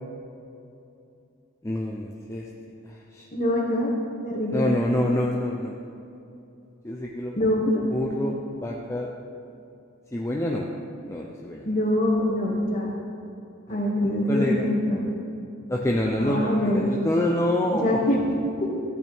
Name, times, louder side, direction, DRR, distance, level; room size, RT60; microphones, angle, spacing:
voice 1, 1.6-2.5 2.8-3.3 4.5-5.8 6.8-7.4 7.9-8.3 8.6-9.1 10.1-10.7 11.1-11.7 13.7-14.6 15.7-18.2, left 1 dB, 15° left, -1 dB, 0.5 m, -27 dB
voice 2, 3.3-3.9 4.2-4.7 7.4-7.8 11.6-12.9 13.7-15.0 16.2-16.9 17.7-18.2 18.6-18.7, left 1 dB, 40° left, -4 dB, 1.9 m, -24 dB
13.5 x 8.7 x 3.5 m, 2.7 s
head